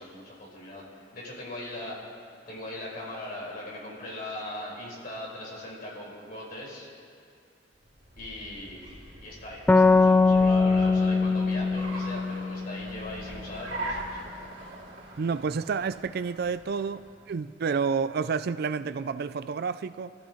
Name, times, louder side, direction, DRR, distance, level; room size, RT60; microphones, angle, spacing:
voice 1, 0.0-2.0 2.5-6.9 8.2-14.2, left 1 dB, 55° left, 5.0 m, -39 dB
Car, 7.8-17.3, right 1 dB, 75° right, 3.0 m, -42 dB
sound 1, 9.7-13.2, left 3 dB, 10° left, 0.3 m, -22 dB
voice 2, 15.2-17.0 17.3-20.1, right 5 dB, 55° right, 0.4 m, -29 dB
26.5 x 14.5 x 3.2 m
head